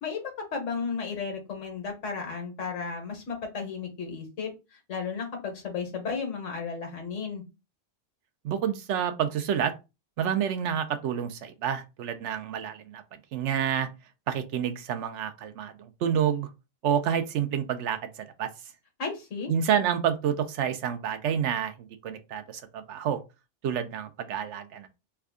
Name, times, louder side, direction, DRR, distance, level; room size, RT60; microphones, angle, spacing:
voice 1, 0.0-7.4 19.0-19.5, left 5 dB, 90° left, 1.4 m, -34 dB
voice 2, 8.4-9.7 10.2-13.0 13.3-13.9 14.3-16.5 16.8-18.5 19.5-23.2 23.6-24.9, right 8 dB, 75° right, 0.9 m, -29 dB
3.4 x 2.2 x 3.5 m
omnidirectional pair, 1.2 m